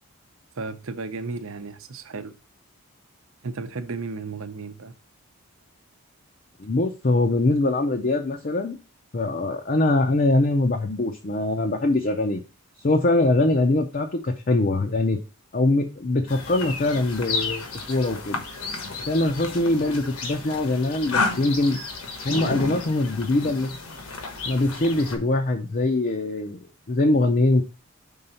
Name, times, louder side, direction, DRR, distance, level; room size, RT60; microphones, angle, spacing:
voice 1, 0.6-2.3 3.4-4.9, right 4 dB, 65° right, 0.7 m, -34 dB
voice 2, 6.6-8.8 9.1-12.4 12.8-15.2 15.5-18.4 19.1-21.8 22.2-23.8 24.5-26.6 26.9-27.6, left 2 dB, 40° left, 0.6 m, -22 dB
sound 1, 16.3-25.2, left 3 dB, 75° left, 1.2 m, -32 dB
5.5 x 3.8 x 5.6 m
head